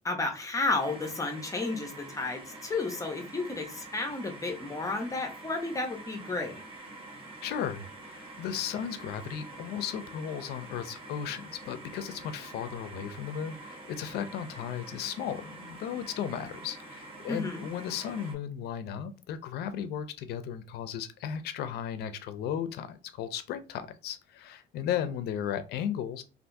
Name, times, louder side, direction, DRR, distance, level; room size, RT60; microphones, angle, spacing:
voice 1, 0.0-6.6 17.3-17.7, left 3 dB, 20° left, 0.8 m, -32 dB
sound 1, 0.8-18.3, right 2 dB, 35° right, 1.1 m, -46 dB
voice 2, 7.4-26.2, left 9 dB, 70° left, 0.5 m, -35 dB
3.4 x 2.5 x 2.6 m
cardioid pair, 110°, 17 cm